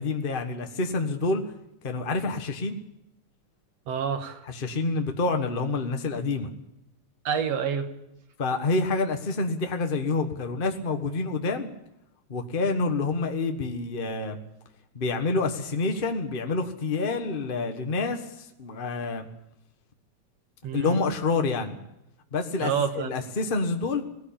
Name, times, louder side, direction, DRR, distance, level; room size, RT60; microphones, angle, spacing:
voice 1, 0.0-1.4 1.8-2.8 4.4-6.5 8.4-11.7 12.3-14.4 14.9-19.3 20.7-21.8 22.3-24.0, left 3 dB, 50° left, 5 dB, 0.6 m, -27 dB
voice 2, 3.9-4.4 7.3-7.9 20.6-21.0 22.6-23.1, right 7 dB, 65° right, 8 dB, 2.4 m, -28 dB
18.5 x 16.0 x 8.7 m, 0.86 s
omnidirectional pair, 3.3 m